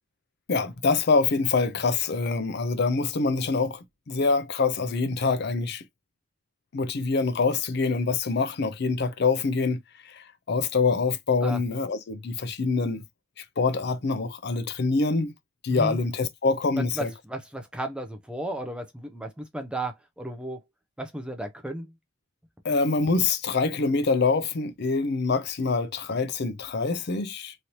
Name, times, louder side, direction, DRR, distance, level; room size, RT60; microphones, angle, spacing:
voice 1, 0.5-5.8 6.7-13.0 13.4-15.3 15.6-17.1 22.6-27.5, left 4 dB, 55° left, 0.5 m, -25 dB
voice 2, 16.8-20.6 21.0-21.9, right 1 dB, 5° right, 0.5 m, -34 dB
3.2 x 2.6 x 2.8 m
head